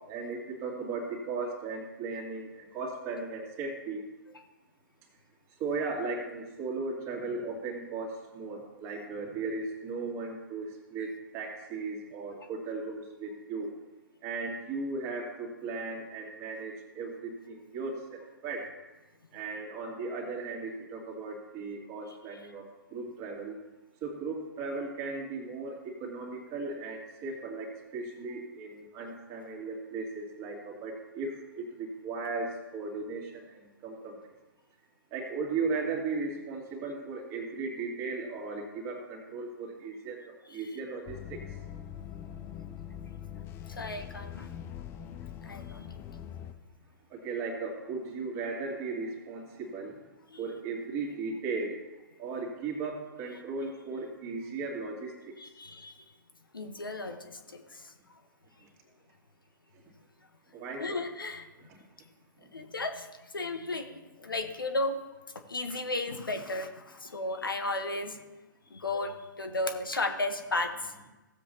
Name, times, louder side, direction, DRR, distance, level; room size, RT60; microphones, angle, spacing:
voice 1, 0.1-4.0 5.6-13.7 14.2-18.7 19.3-23.6 24.0-34.2 35.1-41.4 47.1-50.0 50.4-51.8 52.2-55.3 60.5-61.0 61.7-61.8, right 4 dB, 30° right, -1 dB, 2.3 m, -36 dB
sound 1, 41.0-46.5, left 9 dB, 20° left, 0.5 m, -43 dB
voice 2, 43.8-44.5 45.4-45.9 50.3-50.4 55.4-55.9 56.5-57.9 60.8-61.5 62.5-63.1 63.3-65.0 65.5-68.2 68.7-70.9, left 2 dB, 80° left, 6 dB, 1.2 m, -34 dB
16.5 x 7.6 x 2.9 m, 1.1 s
figure-of-eight pair, 120°, 11 cm